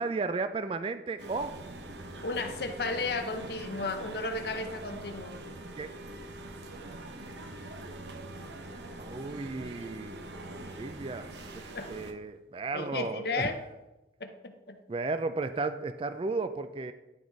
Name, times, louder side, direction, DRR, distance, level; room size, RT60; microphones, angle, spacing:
voice 1, 0.0-1.5 5.8-5.9 9.0-10.2 10.8-13.5 14.9-16.9, right 3 dB, 30° right, 11 dB, 0.3 m, -34 dB
sound 1, 1.2-12.1, right 2 dB, 75° right, 0.8 m, -43 dB
voice 2, 2.2-5.3 11.7-11.9 12.7-13.6 14.2-14.8, left 3 dB, 60° left, 6 dB, 0.7 m, -34 dB
10.5 x 3.9 x 4.7 m, 1.0 s
head